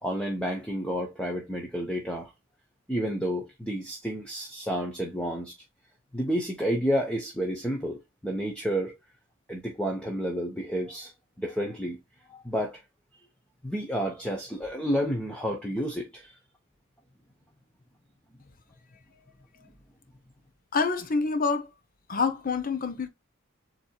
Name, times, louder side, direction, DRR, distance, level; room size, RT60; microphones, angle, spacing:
voice 1, 0.0-2.3 2.9-5.5 6.1-9.0 9.5-11.1 11.4-12.0 12.3-12.8 13.6-16.4, equal, 5° left, 0.8 m, -30 dB
voice 2, 20.7-21.7 22.1-23.1, left 4 dB, 40° left, 0.8 m, -27 dB
7.4 x 2.9 x 2.2 m
head